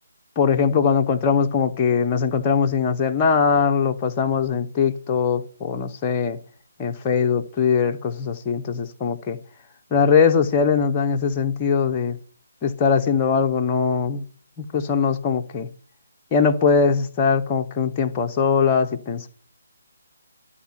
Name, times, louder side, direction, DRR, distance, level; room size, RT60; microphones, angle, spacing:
voice 1, 0.4-6.4 6.8-9.4 9.9-12.2 12.6-14.2 14.7-15.7 16.3-19.3, left 6 dB, 20° left, 0.8 m, -21 dB
11.5 x 4.7 x 7.2 m
figure-of-eight pair, 150°, 0 cm